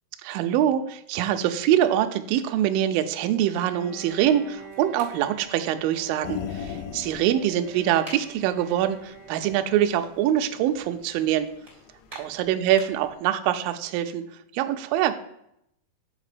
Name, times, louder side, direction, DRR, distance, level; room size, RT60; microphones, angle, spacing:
voice 1, 0.2-11.5 12.1-14.2 14.5-15.2, right 11 dB, 85° right, 7 dB, 2.1 m, -24 dB
Bowed string instrument, 3.5-10.3, right 5 dB, 35° right, 1.8 m, -47 dB
sound 1, 3.8-13.2, equal, 50° right, 0.4 m, -52 dB
sound 2, 6.2-12.1 12.4-12.5, left 8 dB, 85° left, 2.0 m, -38 dB
7.3 x 4.1 x 4.9 m, 0.76 s
omnidirectional pair, 4.5 m